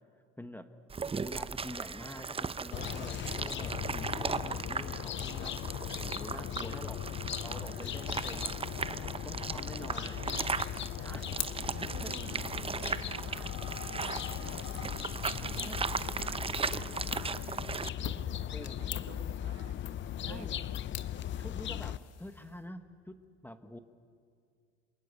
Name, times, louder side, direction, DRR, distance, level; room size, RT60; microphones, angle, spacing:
sound 1, 0.9-17.9, right 5 dB, 15° right, 0.6 m, -37 dB
voice 1, 1.1-5.7 6.0-7.0 7.4-8.5 8.9-10.1 11.0-11.2 11.8-12.4 15.6-15.9 18.4-19.0 20.3-20.5 21.4-23.2 23.4-23.8, left 1 dB, 5° left, 9 dB, 1.1 m, -46 dB
sound 2, 2.7-22.0, left 11 dB, 35° left, 0.5 m, -38 dB
voice 2, 6.7-7.3 9.8-10.5 10.9-11.3 11.7-13.5 13.8-14.9 15.2-19.8 20.2-20.8, right 9 dB, 50° right, 8 dB, 1.8 m, -51 dB
sound 3, 11.0-22.7, left 10 dB, 50° left, 1.5 m, -47 dB
27.5 x 19.0 x 8.2 m, 2.3 s
supercardioid pair, 90°, 32 cm